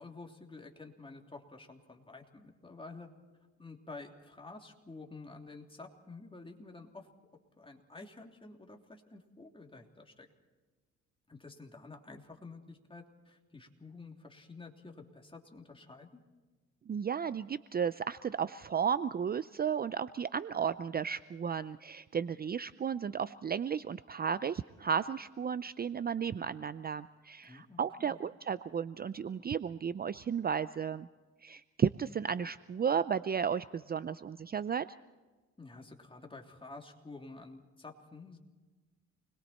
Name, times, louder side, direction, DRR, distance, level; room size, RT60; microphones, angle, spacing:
voice 1, 0.0-3.1 3.6-7.1 7.6-10.3 11.3-16.2 27.4-28.2 35.6-38.4, left 3 dB, 15° left, 2 dB, 3.1 m, -50 dB
voice 2, 16.9-31.1 31.4-35.0, right 7 dB, 30° right, 15 dB, 0.5 m, -34 dB
28.5 x 21.5 x 4.4 m, 1.3 s
cardioid pair, 90°, 30 cm